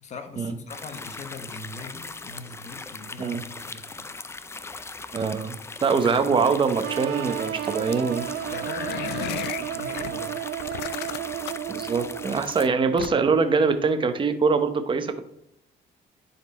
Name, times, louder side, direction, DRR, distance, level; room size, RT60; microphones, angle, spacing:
voice 1, 0.0-4.0 7.8-8.2 8.5-9.4 9.7-10.5, left 4 dB, 45° left, 6 dB, 1.3 m, -41 dB
sound 1, 0.7-12.7, left 3 dB, 15° left, 0.4 m, -39 dB
voice 2, 5.1-8.2 11.7-15.3, right 5 dB, 30° right, 8 dB, 0.9 m, -23 dB
sound 2, 6.8-12.6, right 11 dB, 65° right, 0.5 m, -33 dB
sound 3, 8.5-10.1 10.6-11.7 13.0-13.4, left 14 dB, 80° left, 0.4 m, -34 dB
10.5 x 4.2 x 4.2 m, 0.79 s
cardioid pair, 110°, 17 cm